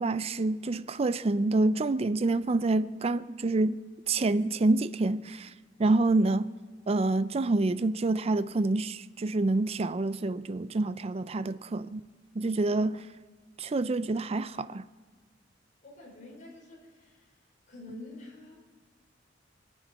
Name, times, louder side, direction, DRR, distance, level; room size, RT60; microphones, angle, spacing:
voice 1, 0.0-5.5 5.8-6.5 6.9-12.0 12.4-13.0 13.6-14.9, right 2 dB, 35° right, 0.4 m, -27 dB
voice 2, 15.8-17.4 17.7-18.6, left 2 dB, 45° left, 5.4 m, -48 dB
24.0 x 9.2 x 5.4 m
head